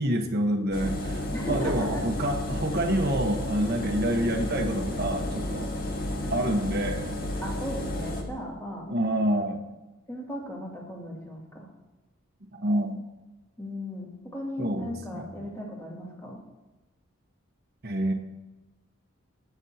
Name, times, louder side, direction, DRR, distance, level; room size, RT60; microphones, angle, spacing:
voice 1, 0.0-5.7 6.3-7.2 8.9-9.6 12.5-13.1 14.6-15.3 17.8-18.1, right 1 dB, 50° right, 4 dB, 1.2 m, -27 dB
Engine, 0.7-8.2, left 1 dB, 45° left, 1.5 m, -32 dB
voice 2, 1.3-2.0 7.4-8.9 10.1-11.7 13.6-16.4, left 1 dB, 15° left, -3 dB, 2.4 m, -36 dB
19.5 x 7.2 x 2.8 m, 1.1 s
head